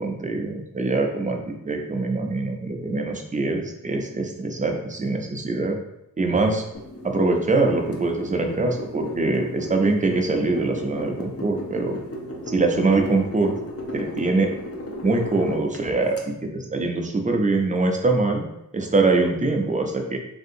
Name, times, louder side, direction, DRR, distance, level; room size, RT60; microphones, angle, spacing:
voice 1, 0.0-5.8 6.2-6.6 7.0-12.0 12.5-13.6 13.9-14.5 15.0-18.4 18.7-20.2, right 3 dB, 25° right, 3 dB, 0.5 m, -23 dB
sound 1, 6.7-16.2, left 1 dB, 45° left, 0.7 m, -35 dB
3.4 x 2.7 x 2.6 m, 0.84 s
wide cardioid pair, 70°, 32 cm